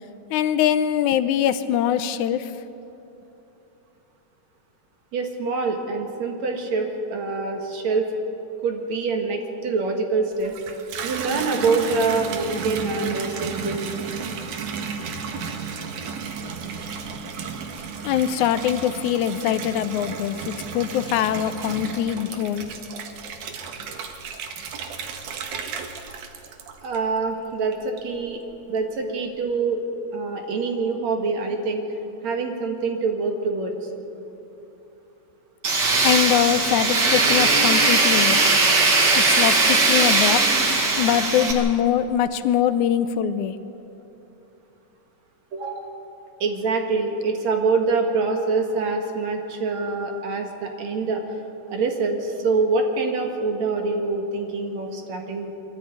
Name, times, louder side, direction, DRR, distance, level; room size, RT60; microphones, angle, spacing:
voice 1, 0.3-2.5 18.0-22.7 36.0-38.4 39.2-43.6, left 10 dB, 80° left, 12 dB, 2.1 m, -23 dB
voice 2, 5.1-8.0 8.6-10.6 11.0-14.0 26.8-28.4 28.7-29.8 30.1-31.8 32.2-33.9 45.5-45.9 46.4-51.2 51.7-55.5, right 4 dB, 65° right, 3 dB, 3.0 m, -25 dB
Water tap faucet / Bathtub (filling or washing), 10.3-27.3 27.7-28.3, right 6 dB, 85° right, 2.9 m, -33 dB
Tools, 35.6-41.5, right 3 dB, 40° right, 2.3 m, -19 dB
23.0 x 13.5 x 9.3 m, 3.0 s
omnidirectional pair, 3.5 m